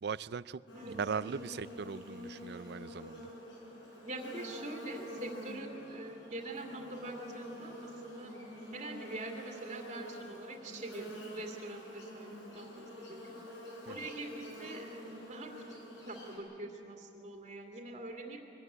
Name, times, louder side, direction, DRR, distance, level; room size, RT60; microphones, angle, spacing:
voice 1, 0.0-3.3 13.9-14.0, right 6 dB, 60° right, 0.4 m, -39 dB
Buzz, 0.7-16.4, equal, 80° left, 7.6 m, -47 dB
voice 2, 4.0-8.3 8.7-13.3 13.9-15.8 16.1-18.4, right 2 dB, 40° right, 2.3 m, -44 dB
24.0 x 16.0 x 9.8 m
head